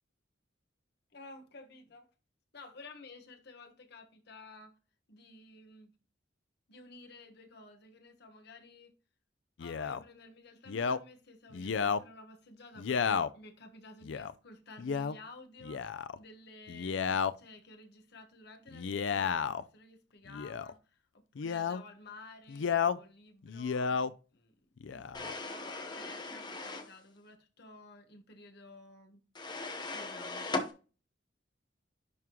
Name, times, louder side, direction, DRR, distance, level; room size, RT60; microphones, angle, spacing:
voice 1, 1.1-2.1 2.5-4.8 5.1-5.9 6.7-8.9 9.6-15.8 16.2-24.5 24.9-29.2 29.9-30.5, left 2 dB, 60° left, 1.4 m, -53 dB
Male speech man speaking, 9.6-10.0 10.7-11.0 11.5-12.0 12.8-13.3 14.0-14.3 14.8-15.2 15.6-16.2 16.7-17.3 18.7-19.6 20.3-20.7 21.4-21.8 22.5-23.0 23.4-24.1 24.8-25.3, left 6 dB, 80° left, 0.4 m, -32 dB
sound 1, 25.1-26.9 29.4-30.7, left 3 dB, 25° left, 0.9 m, -38 dB
10.5 x 3.6 x 3.0 m
head